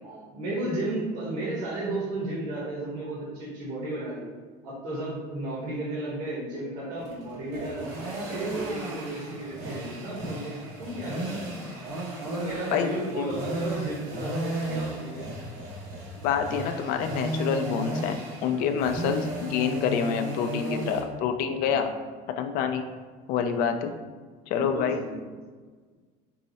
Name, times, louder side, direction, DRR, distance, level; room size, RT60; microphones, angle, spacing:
voice 1, 0.0-4.3 4.6-7.8 8.2-11.7 12.2-15.2 21.6-21.9 23.7-23.9 24.5-25.2, right 1 dB, 55° right, -6 dB, 1.2 m, -34 dB
sound 1, 7.0-21.0, right 1 dB, 85° right, 1.0 m, -35 dB
voice 2, 16.2-18.2 18.4-21.9 22.4-22.8 23.3-23.9 24.5-25.0, left 7 dB, 55° left, 6 dB, 0.4 m, -27 dB
4.6 x 2.0 x 4.0 m, 1.4 s
cardioid pair, 160°, 17 cm